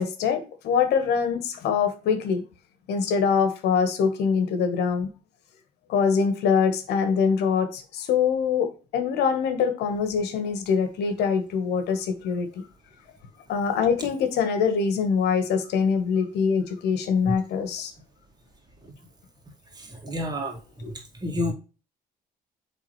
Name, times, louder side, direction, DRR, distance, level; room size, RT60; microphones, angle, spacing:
voice 1, 0.0-2.4 2.9-5.1 5.9-12.5 13.5-17.9 20.8-20.9, left 6 dB, 80° left, 8 dB, 1.3 m, -24 dB
voice 2, 19.8-20.6 21.2-21.5, left 1 dB, 25° right, 2 dB, 2.0 m, -29 dB
8.5 x 3.6 x 3.1 m, 0.34 s
cardioid pair, 110°, 17 cm